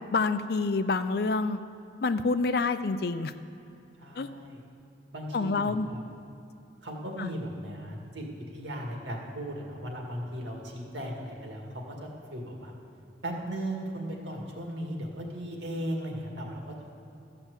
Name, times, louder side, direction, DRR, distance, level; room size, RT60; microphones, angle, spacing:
voice 1, 0.1-1.6 2.0-3.3 4.1-4.3 5.3-5.9 7.2-7.3, left 3 dB, 55° left, 12 dB, 0.5 m, -27 dB
voice 2, 4.0-4.6 5.1-6.0 6.8-12.7 13.2-16.9, equal, 80° right, 0 dB, 2.0 m, -37 dB
14.0 x 5.8 x 8.2 m, 2.9 s
head